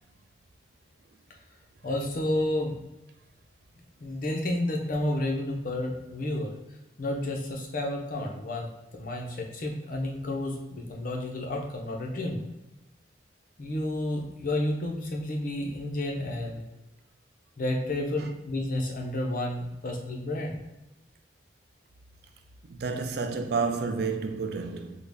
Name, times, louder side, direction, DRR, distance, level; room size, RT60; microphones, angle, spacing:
voice 1, 1.8-2.8 4.0-6.5 7.0-8.7 8.9-12.4 13.6-16.6 17.6-20.6, left 1 dB, 45° left, 0.6 m, -31 dB
voice 2, 22.6-25.0, right 4 dB, 60° right, 0.4 m, -30 dB
3.7 x 2.1 x 3.4 m
head